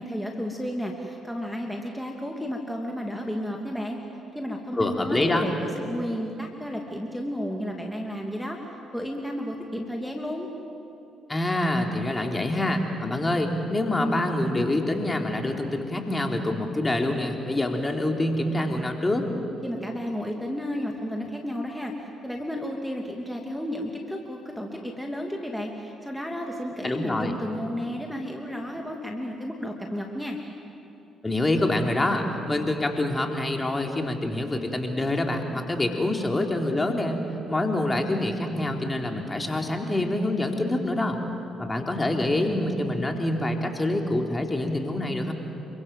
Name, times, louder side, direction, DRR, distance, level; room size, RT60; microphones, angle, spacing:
voice 1, 0.0-4.0 4.3-8.6 8.9-10.5 19.6-30.4, equal, ahead, 1 dB, 2.9 m, -32 dB
voice 2, 4.7-5.5 11.3-19.3 26.8-27.3 31.2-37.2 37.5-41.2 41.6-45.3, left 1 dB, 20° left, 2 dB, 3.8 m, -26 dB
28.5 x 25.0 x 7.8 m, 2.8 s
hypercardioid pair, 45°, 0 cm